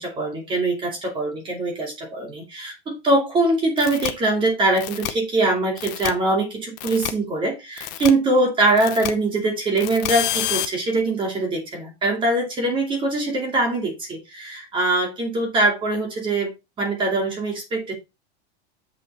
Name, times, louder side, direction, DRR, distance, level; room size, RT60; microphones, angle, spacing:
voice 1, 0.0-16.5 16.8-17.9, right 2 dB, 15° right, 2.5 m, -22 dB
sound 1, 3.8-4.1 4.8-5.1 5.8-6.1 6.8-7.1 7.8-8.1 8.8-9.1 9.8-10.7, left 14 dB, 40° left, 0.9 m, -27 dB
7.8 x 5.8 x 4.1 m
supercardioid pair, 175°, 32 cm